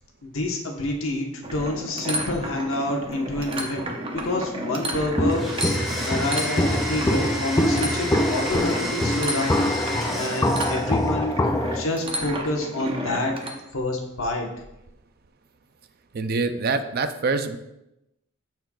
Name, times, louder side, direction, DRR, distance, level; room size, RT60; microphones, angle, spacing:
voice 1, 0.2-3.9 4.1-5.4 6.1-9.6 10.1-11.4 11.7-13.3 13.7-14.5, left 2 dB, 70° left, 1 dB, 1.2 m, -27 dB
sound 1, 1.4-13.5, right 1 dB, 25° right, 0.8 m, -32 dB
Walk footsteps, 5.2-11.9, left 1 dB, 15° left, 0.4 m, -25 dB
Domestic sounds home sounds, 5.3-11.1, equal, ahead, 1.6 m, -32 dB
voice 2, 16.1-17.6, right 4 dB, 45° right, 10 dB, 0.4 m, -25 dB
13.5 x 4.5 x 2.4 m, 0.90 s
head